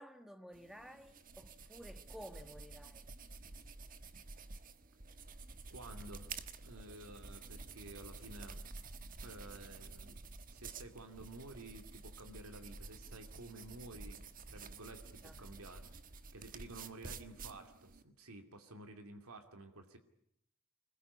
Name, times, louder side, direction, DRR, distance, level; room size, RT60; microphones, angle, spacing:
voice 1, 0.0-3.1 15.2-15.7, equal, ahead, 1.5 m, -53 dB
sound 1, 0.5-18.0, right 4 dB, 40° right, 1.3 m, -51 dB
voice 2, 5.7-8.6 9.2-10.2 10.5-15.9 16.3-20.0, right 2 dB, 85° right, 2.6 m, -52 dB
26.0 x 21.0 x 9.8 m
head